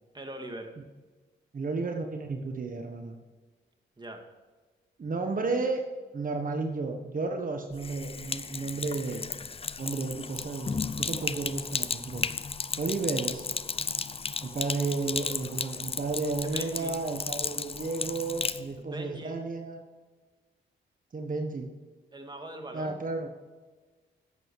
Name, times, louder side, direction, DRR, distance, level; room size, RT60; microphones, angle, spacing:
voice 1, 0.1-0.7 4.0-4.2 16.4-16.9 18.8-19.4 22.1-23.0, right 1 dB, 20° right, 3 dB, 2.1 m, -41 dB
voice 2, 1.5-3.1 5.0-5.8 6.1-9.3 9.8-12.3 12.8-13.5 14.4-19.8 21.1-21.7 22.7-23.3, right 3 dB, 45° right, 4 dB, 1.3 m, -32 dB
Sink (filling or washing), 7.7-18.6, left 5 dB, 30° left, 0.5 m, -34 dB
11.0 x 8.0 x 4.8 m, 1.3 s
cardioid pair, 70°, 20 cm